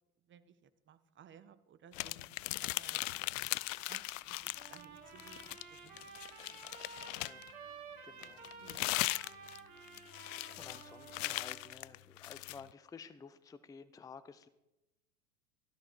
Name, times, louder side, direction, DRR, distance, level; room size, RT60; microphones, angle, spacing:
voice 1, 0.3-3.0 3.9-6.1 8.2-8.3 8.6-8.9, right 8 dB, 25° right, 13 dB, 0.9 m, -59 dB
sound 1, 1.9-4.8 5.2-7.5 8.2-12.6, left 20 dB, 60° left, 0.5 m, -39 dB
sound 2, 3.7-11.6, left 4 dB, 25° left, 3.0 m, -71 dB
Trumpet, 4.5-11.7, right 5 dB, 75° right, 2.8 m, -53 dB
voice 2, 8.0-8.5 10.4-14.5, left 5 dB, 10° left, 12 dB, 0.6 m, -53 dB
13.5 x 12.5 x 4.5 m, 0.95 s
hypercardioid pair, 95°, 44 cm